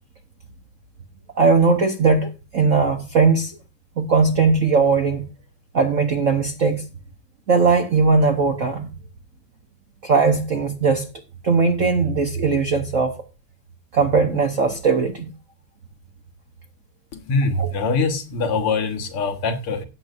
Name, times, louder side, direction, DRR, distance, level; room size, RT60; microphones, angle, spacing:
voice 1, 1.4-3.5 4.0-5.2 5.7-6.8 7.5-8.9 10.0-11.1 11.4-13.2 13.9-15.3 17.6-17.7, right 4 dB, 55° right, 0.9 m, -19 dB
voice 2, 17.1-19.8, left 3 dB, 80° left, 2.4 m, -23 dB
17.0 x 7.8 x 2.5 m
omnidirectional pair, 2.4 m